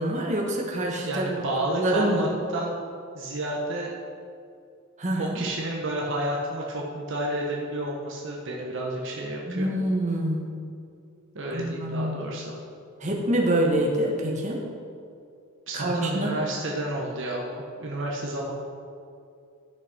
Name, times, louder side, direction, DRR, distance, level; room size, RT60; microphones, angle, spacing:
voice 1, 0.0-1.4 1.8-2.3 5.0-5.4 9.5-10.6 11.5-12.2 13.0-14.6 15.7-16.3, right 1 dB, 35° right, -1 dB, 1.4 m, -26 dB
voice 2, 1.1-2.8 3.1-3.9 5.2-9.7 11.3-12.5 15.7-18.5, right 1 dB, 60° right, -2 dB, 1.1 m, -30 dB
13.0 x 6.1 x 4.5 m, 2.5 s
head